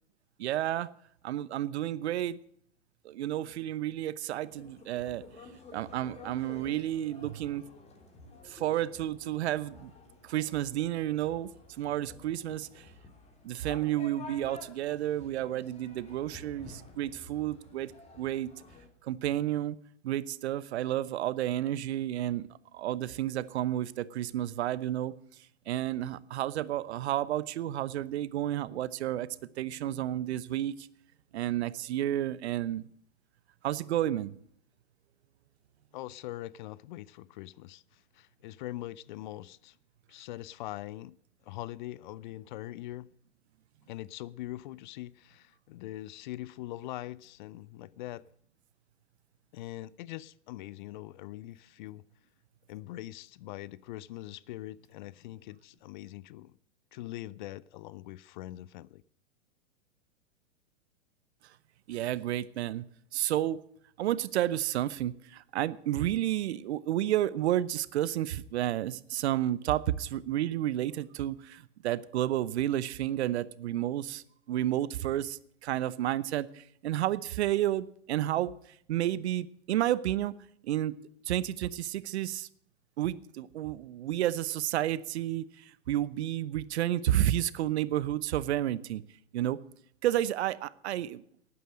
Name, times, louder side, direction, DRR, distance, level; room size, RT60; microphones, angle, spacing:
voice 1, 0.4-0.9 1.2-2.4 3.0-5.2 5.7-7.6 8.4-9.9 10.2-11.5 11.8-12.8 13.4-17.9 18.2-18.5 19.0-19.8 20.0-22.5 22.7-25.1 25.7-29.3 29.6-30.9 31.3-32.8 33.6-34.4 61.9-62.9 63.1-63.6 64.0-78.5 78.9-80.3 80.6-81.0 81.3-82.5 83.0-89.0 89.3-89.6 90.0-91.2, right 13 dB, 60° right, 0.9 m, -31 dB
sound 1, 4.4-18.9, left 3 dB, 15° left, 2.9 m, -51 dB
voice 2, 35.9-37.8 38.1-39.8 40.1-41.2 41.5-43.1 43.9-48.3 49.5-52.0 52.7-56.5 56.9-59.0, left 15 dB, 40° left, 0.4 m, -42 dB
12.0 x 9.5 x 7.5 m
hypercardioid pair, 110°, 37 cm